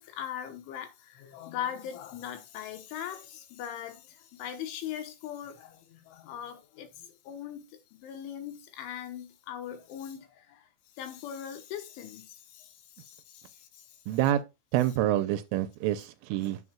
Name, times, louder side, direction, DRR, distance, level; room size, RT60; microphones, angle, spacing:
voice 1, 0.0-7.6 7.9-10.7 11.0-14.0, left 10 dB, 75° left, 3.3 m, -40 dB
voice 2, 14.1-14.4 14.7-16.6, right 13 dB, 85° right, 3.0 m, -27 dB
9.4 x 7.7 x 2.3 m
omnidirectional pair, 6.0 m